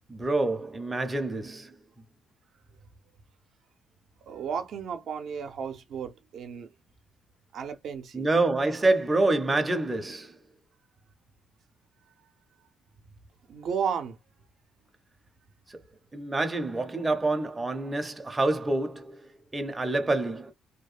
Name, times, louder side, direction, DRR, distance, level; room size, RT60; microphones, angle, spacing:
voice 1, 0.1-1.7 8.1-10.4 15.7-15.8 16.1-20.5, right 2 dB, 15° right, 0.6 m, -27 dB
voice 2, 4.3-6.7 7.5-8.3 13.5-14.2, right 7 dB, 65° right, 0.5 m, -33 dB
2.7 x 2.1 x 2.3 m
cardioid pair, 120°, 0 cm